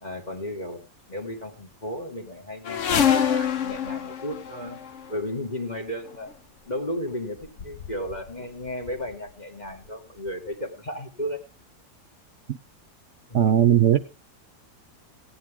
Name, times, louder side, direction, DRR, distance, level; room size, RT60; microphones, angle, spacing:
voice 1, 0.0-0.8 1.1-4.8 5.1-6.3 6.6-11.4 13.3-13.4, left 1 dB, 25° left, 3 dB, 2.4 m, -34 dB
sound 1, 2.6-5.1 6.1-6.3 7.1-7.2 7.4-8.3 8.6-9.2 9.9-10.0 10.3-10.4, left 8 dB, 55° left, 1.2 m, -26 dB
voice 2, 13.3-14.0, right 10 dB, 55° right, 10 dB, 1.0 m, -17 dB
16.5 x 10.5 x 3.8 m, 0.36 s
omnidirectional pair, 1.7 m